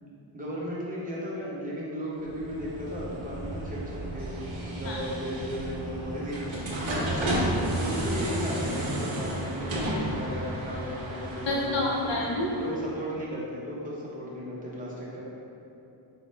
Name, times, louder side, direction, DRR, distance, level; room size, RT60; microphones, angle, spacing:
voice 1, 0.0-4.3 4.6-12.1 12.5-15.2, equal, 15° right, -6 dB, 0.7 m, -36 dB
sound 1, 2.2-13.0, right 1 dB, 65° right, 0.7 m, -32 dB
voice 2, 11.5-12.5, left 2 dB, 65° left, -3 dB, 0.5 m, -28 dB
4.1 x 2.1 x 3.1 m, 2.9 s
wide cardioid pair, 110°, 48 cm